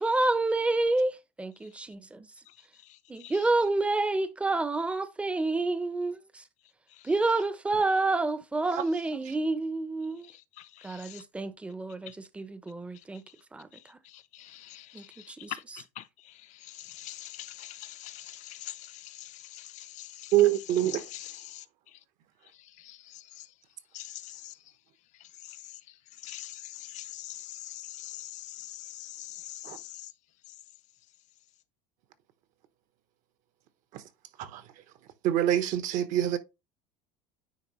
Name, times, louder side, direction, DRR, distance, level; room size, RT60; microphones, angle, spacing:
voice 1, 0.0-2.0 3.1-6.2 7.0-10.3 10.8-13.2 13.5-14.0 14.9-15.8, right 2 dB, 10° right, 0.6 m, -29 dB
voice 2, 10.6-11.2 12.1-12.2 14.0-15.6 16.0-16.3 16.6-20.3 20.9-21.6 22.8-23.2 23.9-24.5 25.5-25.6 26.2-30.1, left 14 dB, 55° left, 0.6 m, -43 dB
voice 3, 20.3-21.0 29.6-29.8 34.4-34.6 35.2-36.4, right 12 dB, 60° right, 1.1 m, -25 dB
9.4 x 3.2 x 3.1 m
supercardioid pair, 115°, 15 cm